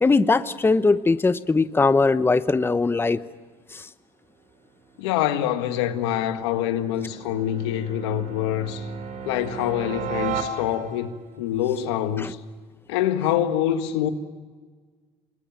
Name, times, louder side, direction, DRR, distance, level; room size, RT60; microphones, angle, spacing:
voice 1, 0.0-3.2 3.7-3.9 12.2-12.3, left 3 dB, 15° left, 0.9 m, -20 dB
sound 1, 4.7-11.2, right 6 dB, 70° right, 3.9 m, -36 dB
voice 2, 5.0-8.9 9.3-12.4 12.9-14.1, left 11 dB, 90° left, 1.8 m, -25 dB
26.0 x 21.5 x 9.1 m
supercardioid pair, 85°, 14 cm